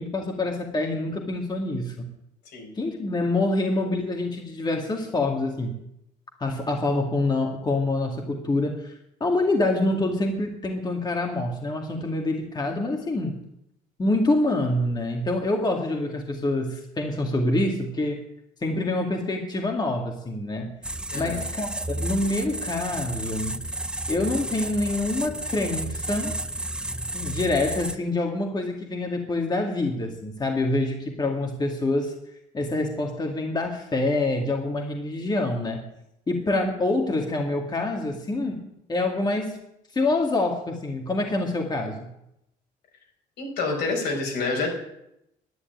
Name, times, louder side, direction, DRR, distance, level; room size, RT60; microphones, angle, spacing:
voice 1, 0.0-2.1 2.8-5.8 6.4-8.9 9.2-13.3 14.0-18.3 18.6-20.7 21.1-23.6 24.1-26.3 27.1-32.1 32.5-35.8 36.3-38.6 38.9-39.6 39.9-42.1, left 2 dB, 25° left, 2 dB, 2.2 m, -26 dB
sound 1, 20.8-28.0, right 1 dB, 5° right, 0.5 m, -32 dB
voice 2, 21.1-21.4 43.4-44.7, left 3 dB, 75° left, 1 dB, 5.6 m, -27 dB
11.0 x 9.8 x 9.3 m, 0.80 s
cardioid pair, 110°, 17 cm